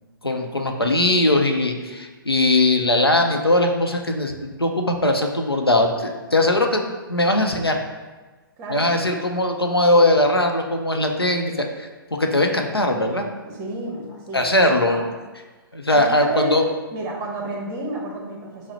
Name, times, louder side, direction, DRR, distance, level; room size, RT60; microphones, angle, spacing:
voice 1, 0.2-7.8 8.7-13.3 14.3-15.0 15.7-16.7, left 1 dB, 90° left, 3 dB, 0.5 m, -20 dB
voice 2, 8.6-9.2 13.4-15.1 15.9-16.6 16.9-18.7, right 2 dB, 20° right, -1 dB, 0.9 m, -31 dB
6.0 x 2.0 x 4.0 m, 1.3 s
figure-of-eight pair, 120°, 12 cm